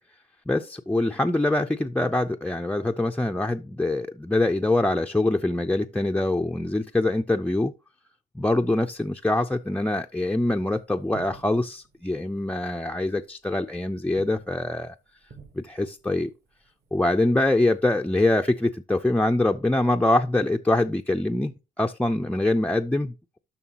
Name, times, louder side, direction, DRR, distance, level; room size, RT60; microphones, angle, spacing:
voice 1, 0.5-7.7 8.4-14.9 15.6-16.3 16.9-23.4, left 2 dB, 5° left, 0.4 m, -24 dB
sound 1, 8.8-18.1, right 4 dB, 60° right, 2.9 m, -54 dB
11.0 x 5.9 x 2.9 m
cardioid pair, 90°, 20 cm